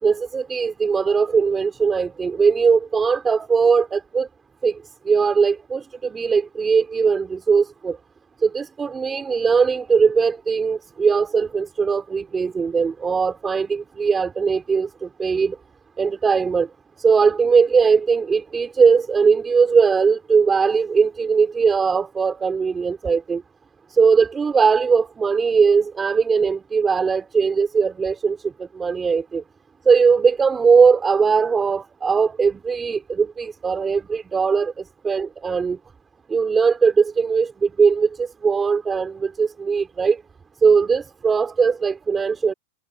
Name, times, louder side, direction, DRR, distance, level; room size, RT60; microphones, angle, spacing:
voice 1, 0.0-4.3 4.6-4.8 5.1-8.0 8.4-15.6 16.0-16.7 17.0-23.4 23.9-29.4 29.9-35.8 36.3-40.2 40.6-42.5, right 5 dB, 15° right, 4.3 m, -19 dB
supercardioid pair, 135°, 0 cm